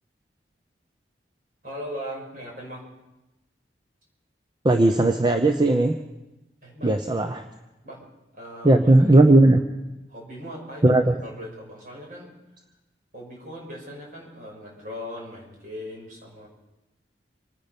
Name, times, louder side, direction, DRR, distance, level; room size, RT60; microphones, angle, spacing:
voice 1, 1.6-2.8 6.6-6.9 7.8-8.0 8.3-9.4 10.1-12.3 13.1-16.5, equal, 50° right, -2 dB, 5.9 m, -39 dB
voice 2, 4.6-6.0 6.8-7.4 8.6-9.6 10.8-11.1, right 2 dB, 25° right, 6 dB, 0.7 m, -17 dB
26.5 x 9.9 x 5.3 m, 0.99 s
head